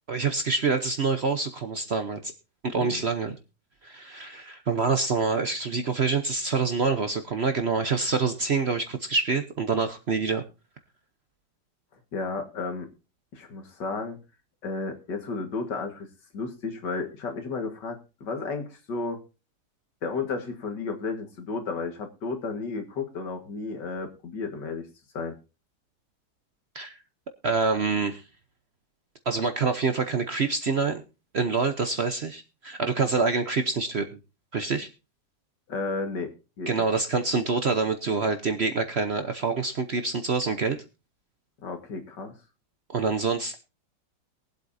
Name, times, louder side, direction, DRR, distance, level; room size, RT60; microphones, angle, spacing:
voice 1, 0.1-2.3 2.6-3.3 3.8-10.4 26.7-27.0 27.4-28.2 29.3-31.0 31.3-34.1 34.5-34.9 36.7-40.8 42.9-43.6, right 4 dB, 45° right, 7 dB, 0.9 m, -26 dB
voice 2, 12.1-12.9 13.3-14.2 14.6-16.1 16.3-19.2 20.0-24.9 25.1-25.3 35.7-36.9 41.6-42.3, left 4 dB, 70° left, 5 dB, 2.3 m, -33 dB
22.0 x 8.1 x 2.7 m, 0.31 s
omnidirectional pair, 1.9 m